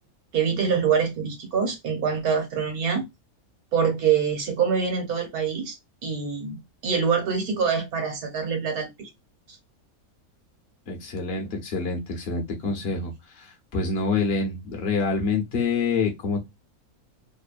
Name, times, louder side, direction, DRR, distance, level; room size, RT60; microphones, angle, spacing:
voice 1, 0.3-3.0 3.7-5.8 6.0-6.6 6.8-9.1, right 6 dB, 80° right, 1.4 m, -25 dB
voice 2, 10.9-16.5, left 4 dB, 50° left, 0.9 m, -27 dB
3.0 x 2.0 x 2.4 m
omnidirectional pair, 1.5 m